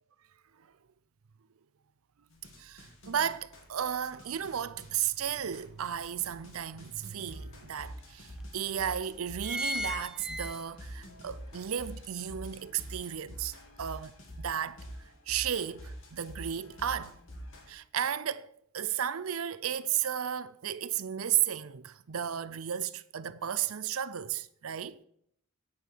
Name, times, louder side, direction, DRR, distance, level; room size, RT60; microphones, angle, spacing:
sound 1, 2.3-17.7, equal, 60° left, 2.4 m, -46 dB
voice 1, 2.6-14.1 14.4-14.8 15.3-17.2 17.7-25.0, right 9 dB, 80° right, 0.6 m, -34 dB
sound 2, 5.2-5.3 5.8-7.0 7.6-7.7 7.9-8.0 8.7-8.9 9.2-11.0 11.4-11.5, left 1 dB, 5° right, 0.5 m, -36 dB
9.5 x 8.5 x 4.6 m
head